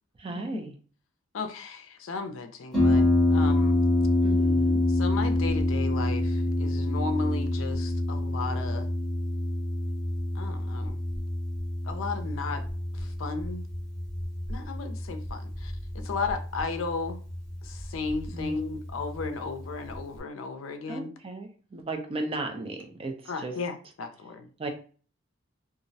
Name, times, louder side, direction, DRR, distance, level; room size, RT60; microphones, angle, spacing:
voice 1, 0.2-0.7 4.2-4.8 18.3-18.6 20.9-23.5 24.6-24.7, right 2 dB, 30° right, 0.4 m, -35 dB
voice 2, 1.3-3.8 4.9-8.9 10.3-11.0 11.8-12.7 12.9-13.7 14.5-17.2 17.6-21.1 23.3-24.5, left 4 dB, 80° left, 0.4 m, -34 dB
Harp, 2.7-20.2, left 1 dB, 5° left, 0.7 m, -27 dB
2.3 x 2.0 x 2.6 m
head